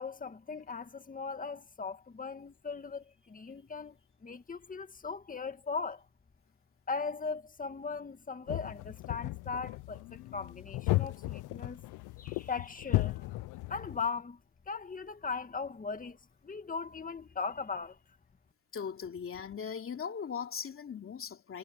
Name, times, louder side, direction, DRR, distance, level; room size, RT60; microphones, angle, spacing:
voice 1, 0.0-4.0 4.2-6.0 6.9-11.8 12.2-13.4 13.7-14.4 14.7-16.2 16.4-18.0, left 5 dB, 25° left, 1.9 m, -39 dB
sound 1, 8.5-14.1, left 19 dB, 90° left, 0.6 m, -35 dB
voice 2, 18.7-21.6, left 7 dB, 45° left, 3.1 m, -39 dB
cardioid pair, 90°, 30 cm